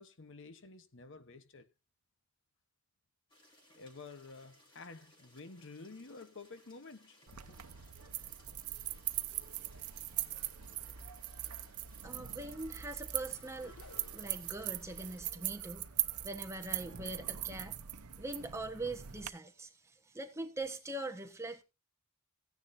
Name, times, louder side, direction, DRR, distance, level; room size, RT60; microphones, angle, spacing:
voice 1, 0.0-1.7 3.7-7.6, left 3 dB, 55° left, 1.0 m, -51 dB
sound 1, 3.3-15.2, left 1 dB, 20° left, 3.9 m, -65 dB
sound 2, 7.3-19.3, right 14 dB, 85° right, 0.8 m, -41 dB
voice 2, 12.0-13.8 14.1-15.8 16.2-17.7 18.2-19.7 20.1-21.6, right 2 dB, 15° right, 1.3 m, -42 dB
sound 3, 13.6-14.5, left 4 dB, 80° left, 1.0 m, -56 dB
16.0 x 10.0 x 2.7 m
head